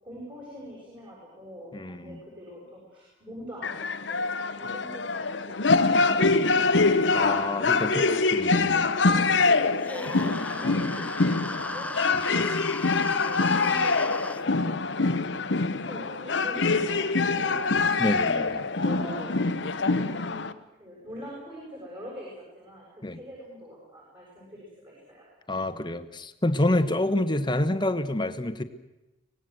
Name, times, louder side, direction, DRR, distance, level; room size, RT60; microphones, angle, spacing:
voice 1, 0.0-6.9 7.7-8.2 8.7-9.0 9.4-12.9 13.2-17.6 18.5-19.5 19.9-20.4 20.8-25.2 26.7-26.8, equal, 30° right, -5 dB, 7.3 m, -42 dB
voice 2, 1.7-2.2 7.1-8.0 8.3-8.9 18.0-18.6 23.0-23.2 25.5-28.6, left 1 dB, 25° left, 10 dB, 1.2 m, -27 dB
sound 1, 3.6-20.5, left 3 dB, 70° left, 1.0 m, -25 dB
sound 2, 9.8-14.4, left 2 dB, 10° left, 0.7 m, -36 dB
24.5 x 19.0 x 7.9 m, 1.0 s
head